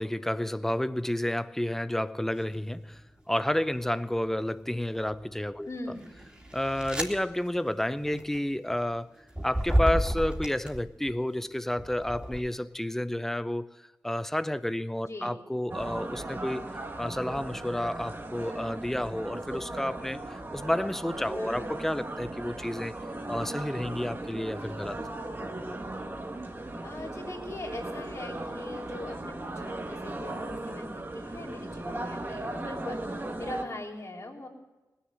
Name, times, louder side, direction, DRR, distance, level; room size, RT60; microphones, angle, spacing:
voice 1, 0.0-3.0 3.3-5.7 6.5-9.1 9.4-23.0 23.3-25.0, left 1 dB, 5° left, 0.6 m, -31 dB
sound 1, 2.4-2.7 3.3-4.1 4.7-11.1 11.7-12.4, right 1 dB, 15° right, 2.9 m, -32 dB
voice 2, 5.7-6.1 15.0-15.3 21.4-21.7 26.8-34.5, left 2 dB, 50° left, 3.5 m, -41 dB
sound 2, 15.7-33.6, right 2 dB, 35° right, 1.7 m, -37 dB
19.0 x 7.2 x 7.6 m
cardioid pair, 55°, 7 cm